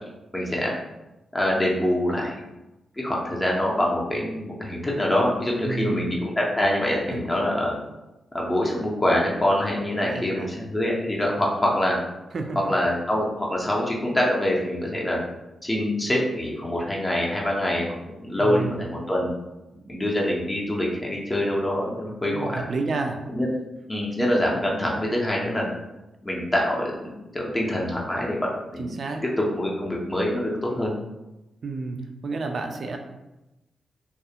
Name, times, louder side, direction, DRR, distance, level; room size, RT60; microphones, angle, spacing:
voice 1, 0.3-0.7 1.3-2.3 3.0-7.7 8.3-12.0 12.7-15.2 15.6-19.3 19.9-22.6 23.3-23.5 23.9-25.7 26.2-28.4 28.7-29.0 29.5-30.9, left 1 dB, 15° left, -3 dB, 0.5 m, -25 dB
voice 2, 5.6-6.1 7.1-7.2 10.0-10.5 12.3-12.7 18.4-18.7 19.9-20.0 22.2-23.2 28.8-29.2 31.6-33.0, right 3 dB, 55° right, 4 dB, 0.3 m, -30 dB
2.3 x 2.0 x 2.7 m, 0.98 s
cardioid pair, 105°, 0 cm